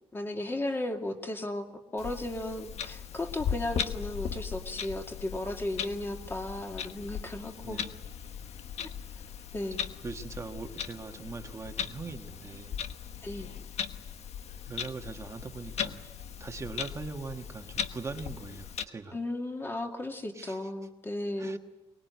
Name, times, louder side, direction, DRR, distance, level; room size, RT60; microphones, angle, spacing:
voice 1, 0.1-7.8 8.8-8.9 9.5-9.8 13.2-13.5 19.1-21.6, left 1 dB, 20° left, 3 dB, 2.3 m, -35 dB
Clock, 2.0-18.8, left 8 dB, 80° left, 1.2 m, -38 dB
voice 2, 7.6-8.0 10.0-12.7 14.7-16.1 16.4-19.2 20.3-20.6 21.4-21.6, right 4 dB, 25° right, 5 dB, 1.3 m, -41 dB
24.0 x 20.5 x 9.2 m, 1.1 s
wide cardioid pair, 155°, 11 cm